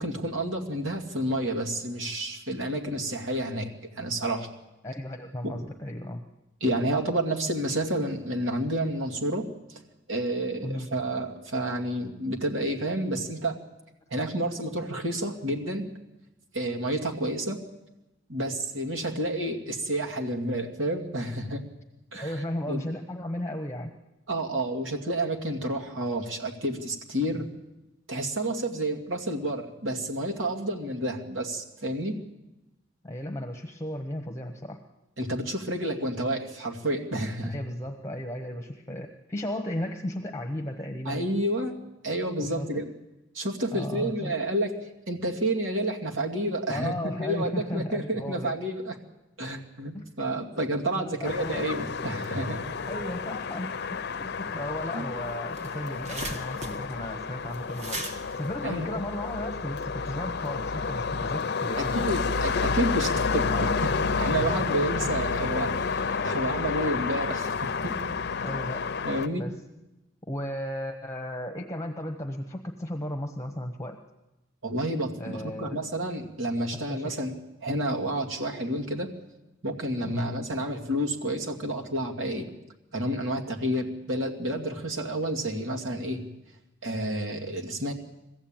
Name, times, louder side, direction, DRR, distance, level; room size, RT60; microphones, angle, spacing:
voice 1, 0.0-4.5 5.4-5.6 6.6-9.8 10.1-13.6 14.1-15.9 16.5-17.6 18.3-21.6 22.1-22.3 22.7-22.8 24.3-27.5 28.1-32.2 35.2-37.5 41.0-41.8 42.0-42.9 43.3-44.7 45.1-46.9 47.2-48.9 49.4-52.6 54.9-55.0 58.6-58.9 61.8-68.1 69.0-69.4 74.6-77.3 77.6-79.1 79.6-82.5 82.9-86.2 86.8-87.9, right 1 dB, 85° right, 2 dB, 2.5 m, -30 dB
voice 2, 4.8-6.2 10.6-10.9 22.2-23.9 27.3-27.5 33.0-34.8 37.4-41.3 42.4-42.8 43.7-44.3 46.7-48.6 49.9-50.0 51.0-51.7 52.9-58.0 58.3-62.1 63.2-63.8 64.2-64.7 68.4-68.9 69.4-69.6 70.3-74.0 75.2-75.8 76.9-77.2 80.0-80.3, left 1 dB, 15° left, 4 dB, 1.1 m, -35 dB
sound 1, 51.2-69.3, left 5 dB, 55° left, 0.7 m, -30 dB
sound 2, 55.0-55.1 55.3-59.6, right 1 dB, 35° right, 2.2 m, -39 dB
22.0 x 15.0 x 9.0 m, 0.98 s
head